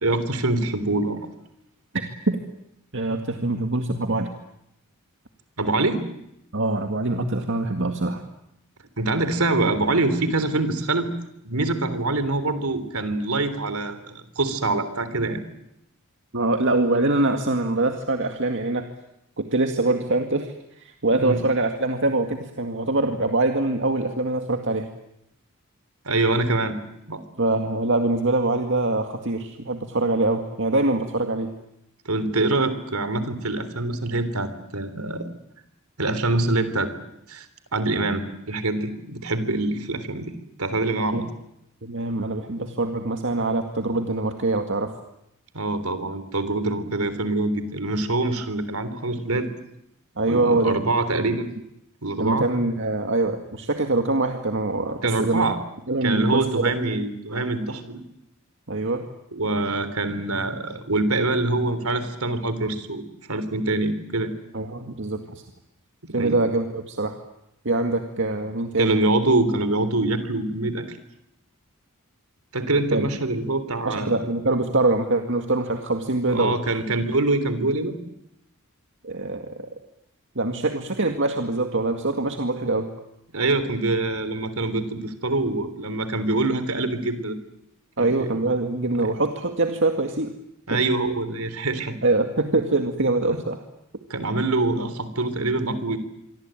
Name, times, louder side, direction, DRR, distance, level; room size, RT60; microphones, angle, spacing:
voice 1, 0.0-1.3 5.6-6.0 9.0-11.1 11.4-15.4 21.2-21.4 26.1-26.8 27.1-27.2 32.1-35.3 36.0-36.9 37.3-37.5 37.7-40.3 40.6-41.2 45.5-49.5 50.3-51.5 52.0-52.5 55.0-55.6 56.0-58.0 59.3-63.0 63.3-64.4 66.1-66.4 68.8-71.0 72.5-74.1 76.3-77.9 83.3-87.4 88.0-88.3 89.0-89.1 90.7-92.0 94.1-96.0, right 2 dB, 80° right, 12 dB, 3.6 m, -24 dB
voice 2, 2.9-4.3 6.5-8.2 16.3-18.8 19.4-24.9 27.4-31.5 41.1-41.2 41.8-44.9 50.2-50.8 51.2-51.3 52.2-55.5 55.9-56.7 58.7-59.0 64.5-65.4 66.1-67.2 67.6-69.0 72.9-73.1 73.9-76.5 79.0-79.5 80.4-82.9 88.0-90.3 90.7-90.8 92.0-93.6, right 2 dB, 60° right, 5 dB, 2.1 m, -24 dB
27.0 x 24.0 x 9.1 m, 0.83 s
head